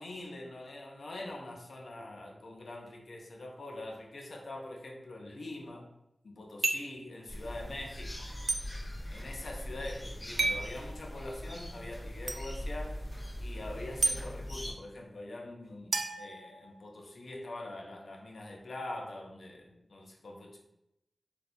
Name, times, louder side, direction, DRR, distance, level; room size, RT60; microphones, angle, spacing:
voice 1, 0.0-5.9 6.2-8.3 9.1-13.0 13.4-20.6, left 2 dB, 85° left, 0 dB, 0.6 m, -44 dB
sound 1, 6.6-7.0 8.5-8.6 10.4-10.7 12.3-12.4 14.0-14.2 15.9-17.0, right 3 dB, 85° right, 0.3 m, -31 dB
sound 2, 7.3-14.7, equal, 35° left, 1.0 m, -41 dB
4.1 x 2.3 x 2.5 m, 0.86 s
wide cardioid pair, 70°, 0 cm